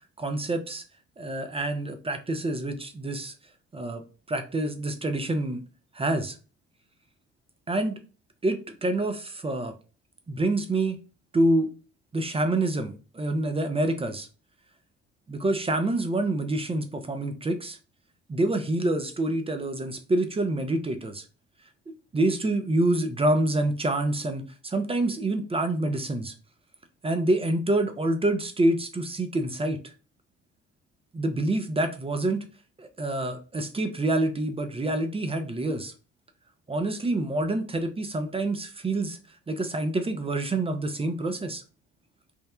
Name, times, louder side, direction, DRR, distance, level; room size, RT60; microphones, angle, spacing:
voice 1, 0.2-0.8 1.2-3.3 3.7-4.0 4.3-5.6 5.9-6.4 7.7-8.0 8.4-9.7 10.3-11.0 11.3-11.7 12.1-14.3 15.3-17.8 18.3-21.2 22.1-26.3 27.0-29.9 31.1-32.4 32.8-35.9 36.7-39.2 39.5-41.6, right 2 dB, 15° right, 0.4 m, -27 dB
3.0 x 2.0 x 2.2 m
hypercardioid pair, 50°, 39 cm